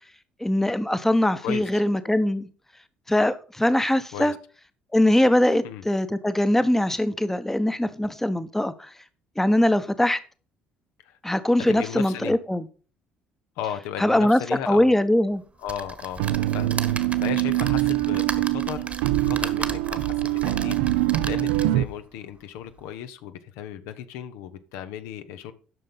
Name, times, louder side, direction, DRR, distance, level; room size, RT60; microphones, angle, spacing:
voice 1, 0.4-2.5 3.1-4.3 4.9-8.9 9.4-10.2 11.2-12.6 14.0-14.4 14.7-15.4, left 1 dB, 5° left, 13 dB, 1.0 m, -22 dB
voice 2, 11.7-12.4 13.6-15.0 15.6-18.9 19.2-25.5, left 9 dB, 65° left, 10 dB, 0.9 m, -36 dB
sound 1, 15.7-21.9 22.4-22.5 22.8-22.9, right 4 dB, 25° right, 1.3 m, -36 dB
sound 2, 16.2-21.8, right 15 dB, 70° right, 0.6 m, -24 dB
11.0 x 6.5 x 5.5 m, 0.38 s
figure-of-eight pair, 50°, 5 cm